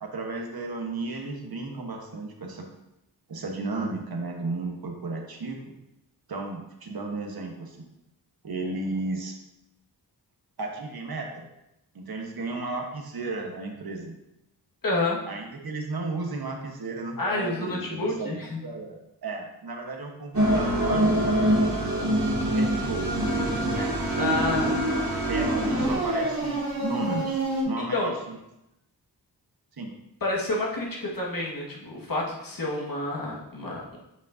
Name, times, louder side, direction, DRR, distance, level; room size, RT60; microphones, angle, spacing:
voice 1, 0.0-2.7 3.3-5.6 6.3-7.8 8.4-9.3 10.6-11.5 11.9-14.1 15.3-18.4 18.6-21.1 22.5-23.1 23.7-24.3 25.3-28.4 29.8-29.9, right 3 dB, 60° right, 2 dB, 1.1 m, -34 dB
voice 2, 14.8-15.2 17.2-18.6 24.2-24.8 27.8-28.1 30.2-34.0, left 2 dB, 55° left, -3 dB, 1.6 m, -29 dB
sound 1, 20.3-27.6, right 1 dB, 45° right, 2.0 m, -25 dB
8.0 x 5.2 x 2.6 m, 0.87 s
wide cardioid pair, 80°, 41 cm